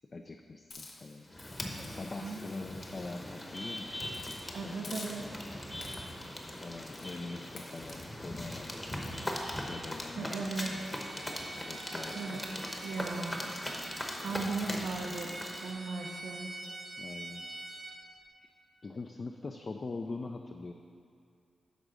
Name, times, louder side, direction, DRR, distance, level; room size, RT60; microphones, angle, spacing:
voice 1, 0.1-1.4 1.8-5.4 6.6-8.9 9.7-11.4 11.7-12.5 14.3-14.5 17.0-17.5 18.4-18.5 18.8-20.7, left 3 dB, 40° left, 4 dB, 0.4 m, -43 dB
Hiss, 0.7-3.6 4.1-4.4 4.8-5.5 5.8-6.3 6.9-7.2 7.6-8.0, left 3 dB, 65° left, 1.1 m, -50 dB
sound 1, 1.3-15.7, left 1 dB, 20° left, 1.0 m, -40 dB
voice 2, 4.5-5.2 10.2-10.7 12.1-12.5 12.8-13.4 14.2-16.5, right 3 dB, 85° right, 1 dB, 0.7 m, -37 dB
Bowed string instrument, 10.6-18.0, right 2 dB, 45° right, 0.9 m, -46 dB
10.0 x 3.6 x 6.3 m, 2.4 s
cardioid pair, 85°, 0 cm